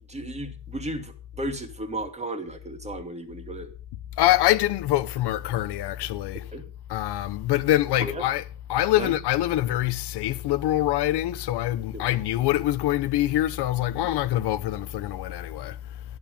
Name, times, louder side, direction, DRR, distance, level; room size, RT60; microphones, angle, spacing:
voice 1, 0.1-3.7 6.5-6.7 8.0-8.2 9.0-9.1 11.9-12.0, right 1 dB, 15° right, 2.4 m, -34 dB
voice 2, 4.2-6.5 6.9-16.0, left 14 dB, 75° left, 1.4 m, -25 dB
14.0 x 11.0 x 5.2 m
cardioid pair, 135°, 41 cm